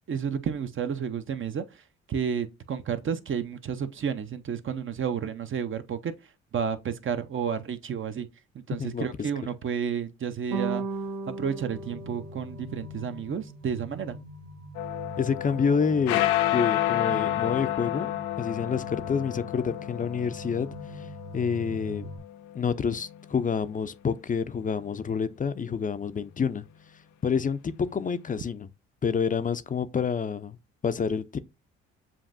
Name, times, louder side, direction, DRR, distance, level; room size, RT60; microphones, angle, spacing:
voice 1, 0.1-1.8 2.1-6.1 6.5-8.3 8.5-10.8 11.4-14.2, right 7 dB, 45° right, 0.7 m, -31 dB
sound 1, 10.5-13.1, right 4 dB, 70° right, 1.3 m, -35 dB
sound 2, 11.6-22.2, equal, 85° right, 1.2 m, -43 dB
sound 3, 14.7-23.3, left 14 dB, 90° left, 0.4 m, -30 dB
voice 2, 15.2-18.1 18.4-20.7 20.9-21.1 21.3-22.1 22.5-26.7 27.2-28.7 29.0-30.6 30.8-31.4, left 6 dB, 25° left, 0.5 m, -28 dB
7.2 x 2.6 x 2.5 m
supercardioid pair, 65°, 30 cm